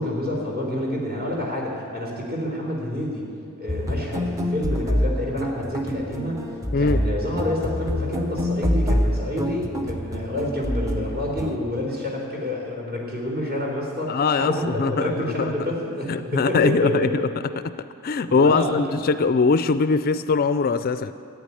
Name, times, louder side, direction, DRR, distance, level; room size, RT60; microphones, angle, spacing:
voice 1, 0.0-3.2 3.6-6.4 6.8-17.1 18.3-19.0, left 1 dB, 45° right, -2 dB, 3.8 m, -28 dB
sound 1, 3.7-11.6, equal, 15° right, 0.7 m, -26 dB
voice 2, 14.1-15.1 15.4-15.5 16.1-17.3 17.6-17.8 18.0-21.1, left 4 dB, 40° left, 12 dB, 0.4 m, -21 dB
13.5 x 9.1 x 9.7 m, 2.4 s
head